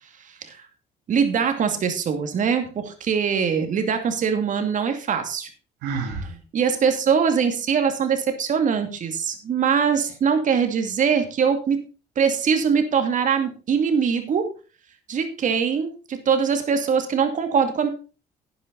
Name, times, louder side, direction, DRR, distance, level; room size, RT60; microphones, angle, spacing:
voice 1, 1.1-5.5 6.2-11.8 12.2-14.5 15.1-17.9, right 6 dB, 50° right, 7 dB, 2.5 m, -22 dB
Sigh, 5.8-6.3, right 4 dB, 80° right, 2.4 m, -28 dB
11.5 x 9.7 x 4.0 m, 0.33 s
cardioid pair, 110°, 17 cm